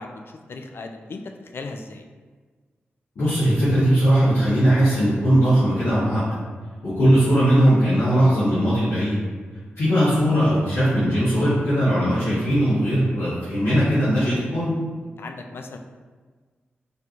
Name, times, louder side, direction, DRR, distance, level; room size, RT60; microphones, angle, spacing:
voice 1, 0.0-2.1 15.2-15.8, left 3 dB, 60° left, 5 dB, 0.4 m, -37 dB
voice 2, 3.1-6.2 6.8-9.1 9.7-14.7, equal, 80° left, -13 dB, 1.3 m, -19 dB
4.4 x 3.4 x 2.5 m, 1.5 s
cardioid pair, 65°, 4 cm